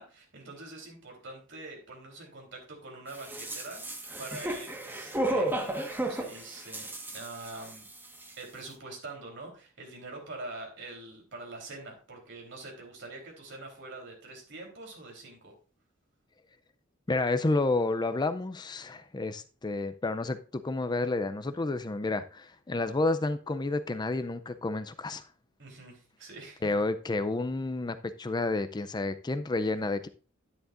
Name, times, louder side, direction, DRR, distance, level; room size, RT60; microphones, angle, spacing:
voice 1, 0.0-7.9 8.4-15.5 25.6-26.7, right 2 dB, 65° right, 3.6 m, -45 dB
sound 1, 3.1-8.0 8.2-8.3, right 1 dB, 10° right, 1.4 m, -33 dB
voice 2, 17.1-25.2 26.6-30.1, left 2 dB, 20° left, 0.4 m, -30 dB
10.5 x 9.8 x 2.5 m
head